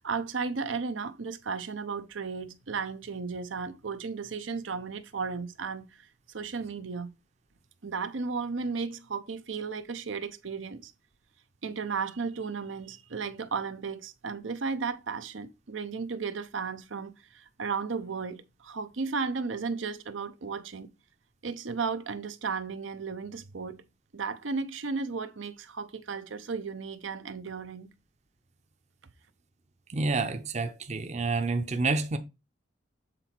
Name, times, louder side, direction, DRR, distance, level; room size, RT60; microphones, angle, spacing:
voice 1, 0.0-7.1 7.8-10.9 11.6-20.9 21.4-23.8 24.1-27.9, right 5 dB, 85° right, 0.7 m, -34 dB
voice 2, 29.9-32.2, right 3 dB, 35° right, 0.6 m, -28 dB
7.7 x 3.9 x 4.5 m
head